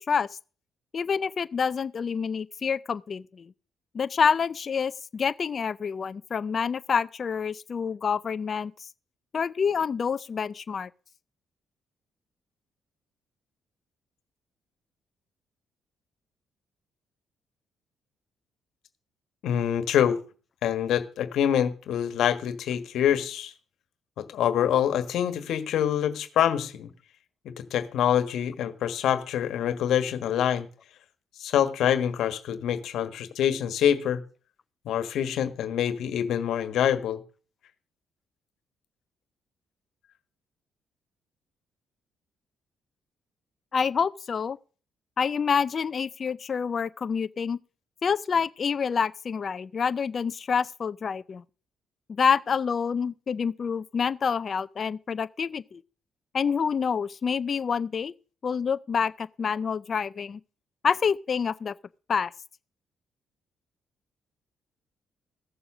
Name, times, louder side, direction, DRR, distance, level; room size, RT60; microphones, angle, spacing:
voice 1, 0.9-3.5 3.9-8.9 9.3-10.9 43.7-44.6 45.2-47.6 48.0-51.4 52.1-55.8 56.3-58.1 58.4-60.4 60.8-61.7 62.1-62.3, left 6 dB, 45° left, 0.5 m, -27 dB
voice 2, 19.4-20.2 20.6-23.5 24.2-26.9 27.4-30.7 31.4-34.2 34.8-37.2, left 9 dB, 75° left, 1.5 m, -25 dB
15.5 x 7.1 x 6.2 m
cardioid pair, 90°, 0 cm